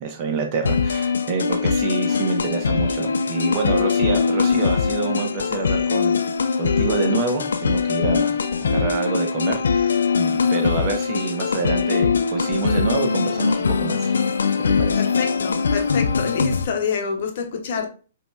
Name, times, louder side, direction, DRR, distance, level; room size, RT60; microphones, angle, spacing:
voice 1, 0.0-6.2 6.6-8.4 8.6-14.1 14.8-15.0, right 4 dB, 40° right, 1.0 m, -27 dB
sound 1, 0.6-16.6, left 5 dB, 80° left, 0.4 m, -22 dB
voice 2, 15.0-17.9, left 5 dB, 60° left, 0.8 m, -26 dB
5.1 x 2.9 x 2.4 m
hypercardioid pair, 125°, 0 cm